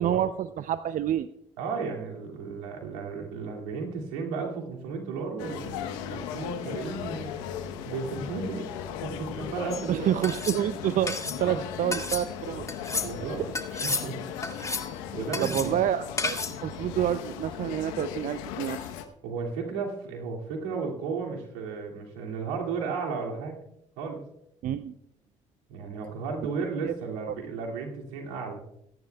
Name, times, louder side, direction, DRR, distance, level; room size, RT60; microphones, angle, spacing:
voice 1, 0.0-1.3 9.9-12.7 13.4-13.5 15.4-18.9 24.6-24.9 26.8-26.9 27.3-27.4, right 11 dB, 55° right, 13 dB, 0.5 m, -28 dB
voice 2, 1.6-7.3 7.9-8.7 9.0-10.1 11.5-11.6 13.0-13.4 13.8-14.2 15.1-15.7 16.5-16.6 19.2-23.5 24.0-24.2 25.7-28.6, right 5 dB, 85° right, 0 dB, 2.5 m, -34 dB
sound 1, 5.4-19.0, left 9 dB, 80° left, 1.0 m, -37 dB
sound 2, 9.7-9.8 10.2-10.6 11.1-11.4 11.9-12.2 12.7-13.1 13.5-14.1 14.4-14.9 15.3-15.7 16.2-16.6, left 3 dB, 20° left, 2.0 m, -31 dB
23.0 x 10.5 x 2.3 m, 0.77 s
hypercardioid pair, 55°, 16 cm